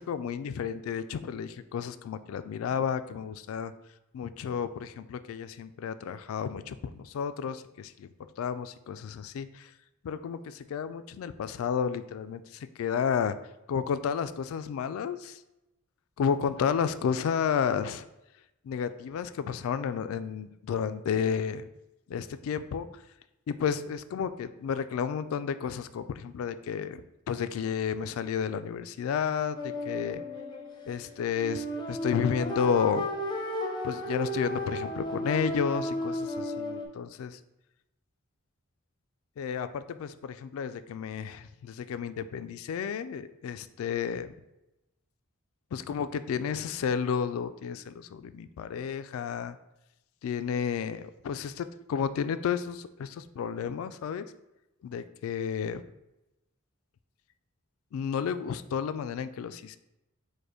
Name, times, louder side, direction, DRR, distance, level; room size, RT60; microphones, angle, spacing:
voice 1, 0.0-3.7 4.1-8.1 8.4-9.7 10.0-13.4 13.7-15.4 16.2-18.1 18.6-21.7 22.1-22.9 23.5-27.0 27.3-30.2 30.9-33.1 33.8-37.4 39.4-44.3 45.7-49.6 50.2-54.3 54.8-55.8 57.9-59.8, left 7 dB, 75° left, 13 dB, 0.3 m, -32 dB
sound 1, 29.6-36.9, equal, 20° left, 0.6 m, -34 dB
4.9 x 2.2 x 4.7 m, 0.92 s
head